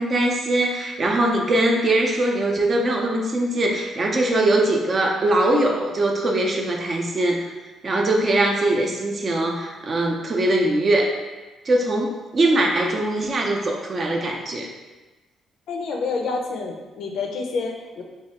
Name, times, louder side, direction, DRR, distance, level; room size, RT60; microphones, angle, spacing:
voice 1, 0.0-7.5 7.8-11.1 11.7-14.7, right 1 dB, 45° right, 1 dB, 0.5 m, -21 dB
voice 2, 15.7-18.0, left 4 dB, 75° left, 1 dB, 0.4 m, -28 dB
3.1 x 2.3 x 2.8 m, 1.2 s
cardioid pair, 90°, 0 cm